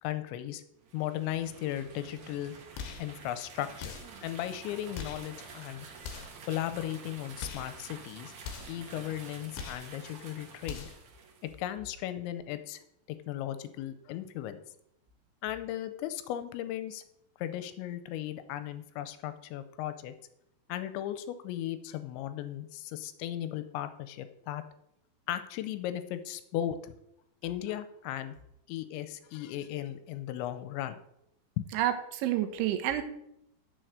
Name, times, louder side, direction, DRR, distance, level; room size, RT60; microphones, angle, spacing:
voice 1, 0.0-0.6 0.9-2.5 3.0-3.9 4.2-5.9 6.5-8.3 8.7-10.9 11.4-12.8 13.1-14.6 15.4-17.0 17.4-20.1 20.7-24.6 25.3-26.9 27.4-28.4 28.7-31.0 31.6-31.7, left 12 dB, 90° left, 11 dB, 3.0 m, -36 dB
sound 1, 0.8-11.6, right 5 dB, 65° right, 1.8 m, -49 dB
sound 2, 2.7-3.1 3.8-4.2 4.9-5.3 6.0-6.4 7.4-7.8 8.4-8.8 9.5-9.9 10.6-11.1, left 7 dB, 70° left, 2.4 m, -42 dB
voice 2, 31.7-33.0, right 12 dB, 85° right, 7 dB, 3.3 m, -29 dB
7.8 x 7.0 x 6.4 m, 0.78 s
omnidirectional pair, 5.3 m